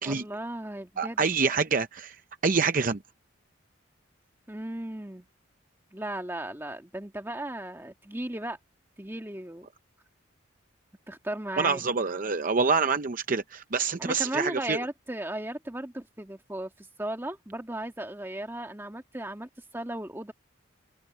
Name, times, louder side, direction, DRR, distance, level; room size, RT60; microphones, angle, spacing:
voice 1, 0.0-1.5 4.5-5.3 5.9-8.6 9.0-9.7 11.1-11.9 14.0-20.3, right 1 dB, 10° right, 1.8 m, -36 dB
voice 2, 1.0-2.2 2.4-3.0 11.6-14.8, right 4 dB, 40° right, 0.6 m, -26 dB
open air
head